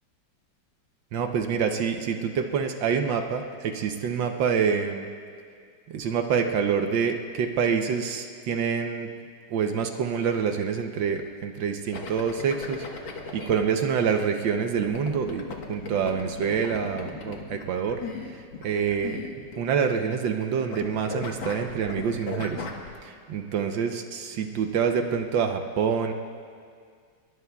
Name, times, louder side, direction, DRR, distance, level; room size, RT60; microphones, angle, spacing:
voice 1, 1.1-5.1 5.9-9.1 9.5-12.9 13.3-19.2 19.6-22.7 23.0-26.1, right 6 dB, 80° right, 5 dB, 1.5 m, -27 dB
sound 1, 11.9-13.6 14.8-20.5 20.7-22.9, left 4 dB, 90° left, 2.2 m, -37 dB
25.0 x 22.5 x 2.3 m, 2.1 s
omnidirectional pair, 2.0 m